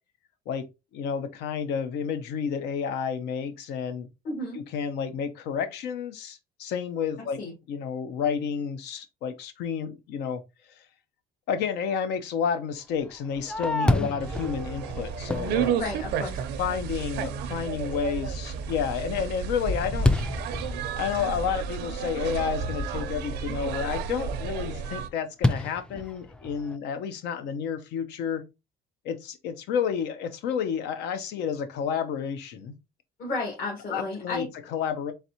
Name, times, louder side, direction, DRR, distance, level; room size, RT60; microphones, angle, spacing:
voice 1, 0.9-4.1 4.5-7.4 7.7-10.4 11.5-15.7 16.6-20.1 20.9-28.4 29.0-32.7 33.9-35.1, left 7 dB, 85° left, 0.7 m, -30 dB
voice 2, 4.2-4.6 7.4-7.5 13.8-14.1 15.7-16.4 33.2-34.5, left 2 dB, 60° left, 1.9 m, -32 dB
Fireworks, 13.0-16.5 17.1-17.2 17.7-18.1 18.5-23.3 25.4-26.8, left 2 dB, 5° left, 0.3 m, -30 dB
sound 1, 14.2-25.1, right 7 dB, 85° right, 0.6 m, -32 dB
4.1 x 3.3 x 2.9 m
cardioid pair, 110°, 17 cm